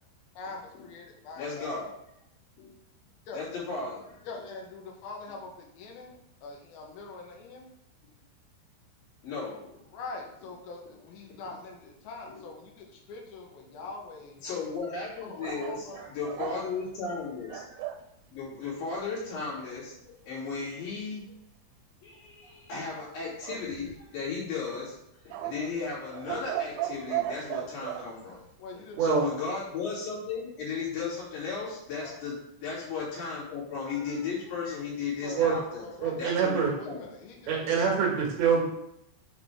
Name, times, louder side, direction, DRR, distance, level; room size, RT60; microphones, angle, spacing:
voice 1, 0.4-1.9 3.3-3.4 4.2-7.7 9.9-14.5 15.2-16.1 28.6-29.0 32.0-32.2 35.2-35.4 35.8-36.3 36.6-37.8, left 3 dB, 75° left, 0 dB, 2.3 m, -43 dB
voice 2, 1.4-1.9 2.6-2.7 3.3-4.4 9.2-9.8 10.8-10.9 12.3-12.5 14.4-18.0 18.3-21.2 22.0-24.9 25.2-28.4 28.8-35.8 36.2-37.1, left 4 dB, 50° left, -8 dB, 4.4 m, -35 dB
sound 1, 15.4-18.1 23.4-24.3 25.3-28.1, right 12 dB, 85° right, 3.0 m, -36 dB
voice 3, 29.0-29.3 35.4-35.6 36.0-36.7 37.5-38.6, right 6 dB, 65° right, -1 dB, 3.1 m, -25 dB
8.0 x 5.9 x 3.5 m, 0.79 s
omnidirectional pair, 5.6 m